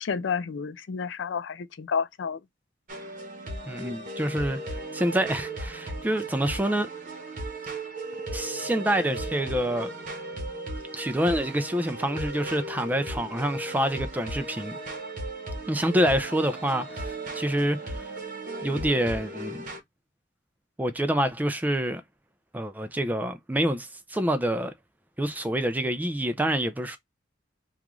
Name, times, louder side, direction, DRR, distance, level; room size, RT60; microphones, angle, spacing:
voice 1, 0.0-2.4, left 6 dB, 70° left, 0.4 m, -30 dB
sound 1, 2.9-19.8, right 2 dB, 45° right, 0.9 m, -36 dB
voice 2, 3.7-6.9 8.3-9.9 10.9-14.8 15.7-18.1 18.6-19.6 20.8-22.0 22.5-24.7 25.2-27.0, equal, 10° right, 0.3 m, -27 dB
3.0 x 2.4 x 3.5 m
head